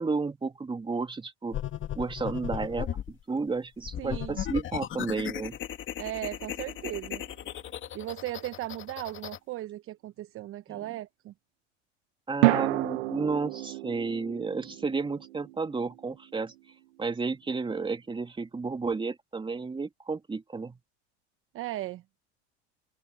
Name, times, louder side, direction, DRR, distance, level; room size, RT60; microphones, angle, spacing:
voice 1, 0.0-1.6 1.9-5.6 10.7-10.9 12.3-16.5 17.0-20.8, right 4 dB, 15° right, 2.8 m, -32 dB
sound 1, 1.5-3.1 3.8-9.4, left 10 dB, 35° left, 2.6 m, -36 dB
voice 2, 4.0-4.4 6.0-7.2 7.9-11.3 21.5-22.0, right 15 dB, 40° right, 0.8 m, -37 dB
sound 2, 6.4-7.5 12.4-16.7, right 19 dB, 80° right, 0.8 m, -31 dB
supercardioid pair, 105°, 33 cm